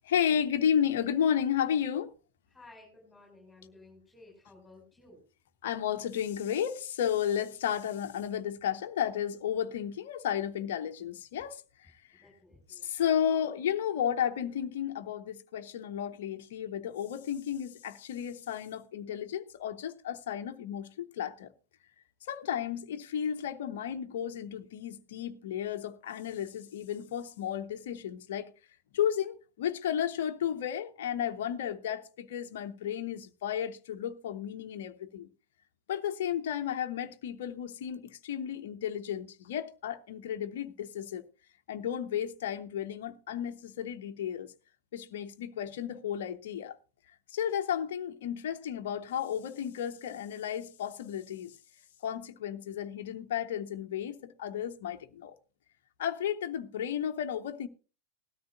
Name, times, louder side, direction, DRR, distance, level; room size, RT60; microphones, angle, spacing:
voice 1, 0.0-2.1 5.6-12.2 12.8-21.5 22.2-28.5 28.9-35.3 35.9-41.3 41.7-44.5 44.9-46.8 47.3-51.6 52.0-55.4 56.0-57.7, left 9 dB, 55° left, 0.8 m, -33 dB
voice 2, 2.5-5.2 12.2-12.9, left 2 dB, 5° left, 6.0 m, -55 dB
18.5 x 13.0 x 2.5 m
figure-of-eight pair, 90°, 0 cm